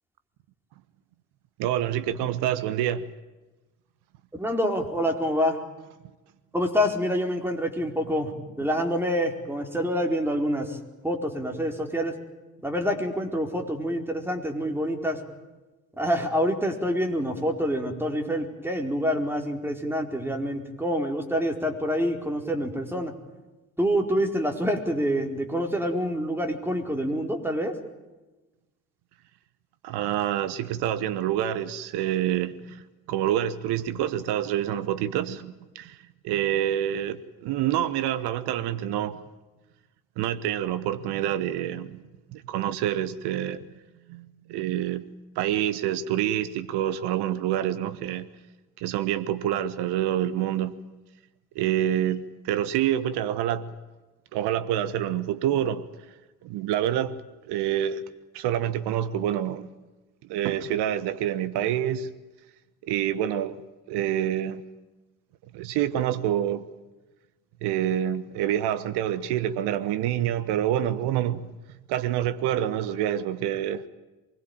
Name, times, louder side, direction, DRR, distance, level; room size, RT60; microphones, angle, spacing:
voice 1, 1.6-3.1 29.8-32.8 33.1-36.0 36.2-39.2 40.2-42.0 42.3-43.6 44.1-45.0 45.3-48.3 48.8-50.8 51.5-53.7 54.3-55.9 56.4-58.0 58.3-59.7 60.3-62.1 62.9-63.6 63.9-64.6 65.5-66.6 67.6-71.4 71.9-73.9, right 11 dB, 60° right, 1.2 m, -27 dB
voice 2, 4.4-5.6 6.5-8.3 8.6-10.8 11.0-12.1 12.6-15.2 16.0-23.1 23.8-27.8, equal, 5° right, 4.6 m, -26 dB
24.5 x 21.0 x 9.1 m
figure-of-eight pair, 45°, 45 cm